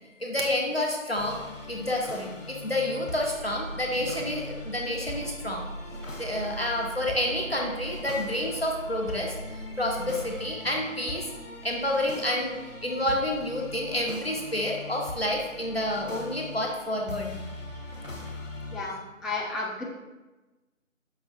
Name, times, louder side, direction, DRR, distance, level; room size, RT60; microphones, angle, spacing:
voice 1, 0.2-5.7 6.2-9.4 9.8-11.3 11.6-12.6 12.8-17.7, left 1 dB, 50° left, 0 dB, 0.5 m, -29 dB
sound 1, 1.2-18.8, left 2 dB, 65° left, 1.0 m, -42 dB
Engine, 3.2-10.5, right 2 dB, 65° right, 1.0 m, -41 dB
voice 2, 18.7-19.9, left 3 dB, ahead, -3 dB, 0.4 m, -33 dB
5.4 x 2.2 x 3.1 m, 1.1 s
figure-of-eight pair, 175°, 40 cm